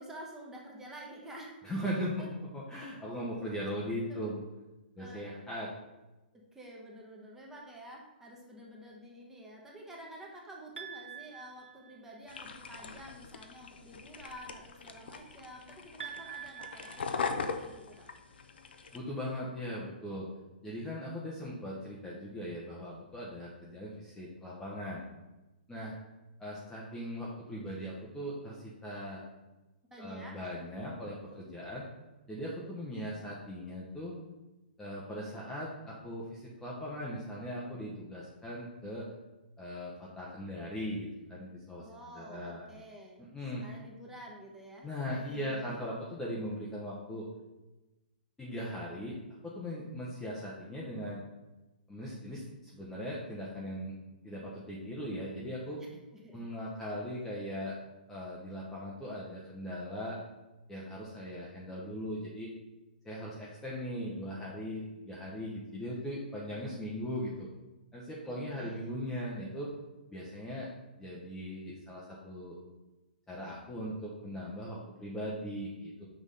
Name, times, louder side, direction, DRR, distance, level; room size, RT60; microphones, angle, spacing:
voice 1, 0.0-2.3 4.1-4.3 5.0-5.3 6.5-18.1 29.9-30.4 41.8-43.2 43.6-44.9 45.1-45.8 55.8-56.5 68.2-68.9, right 1 dB, 10° right, -2 dB, 1.2 m, -49 dB
voice 2, 1.6-2.2 2.5-4.4 5.0-5.7 18.9-20.3 20.6-25.0 25.7-26.0 26.4-29.2 30.0-31.8 32.3-34.2 34.8-39.1 39.6-42.7 43.3-43.6 44.8-47.3 48.4-49.1 49.4-51.2 51.9-54.0 54.2-55.8 56.3-57.8 58.1-60.2 60.7-62.5 63.0-67.5 67.9-69.7 70.1-70.7 71.0-72.6 73.3-76.1, equal, 10° left, -5 dB, 0.9 m, -39 dB
sound 1, 10.8-12.4 16.0-18.0, right 8 dB, 90° right, 0.7 m, -47 dB
sound 2, 12.3-19.0, left 5 dB, 80° left, 0.7 m, -40 dB
6.3 x 3.6 x 5.2 m, 1.1 s
hypercardioid pair, 145°, 5 cm